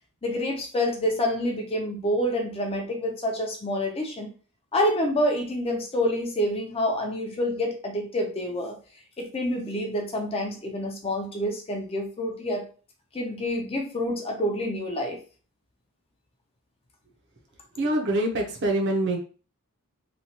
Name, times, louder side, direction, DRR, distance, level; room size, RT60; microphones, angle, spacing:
voice 1, 0.2-4.3 4.7-8.8 9.2-12.6 13.1-15.2, left 1 dB, 25° left, 1 dB, 0.5 m, -27 dB
voice 2, 17.8-19.2, right 1 dB, 50° right, 1 dB, 0.7 m, -25 dB
3.0 x 2.3 x 2.8 m, 0.37 s
head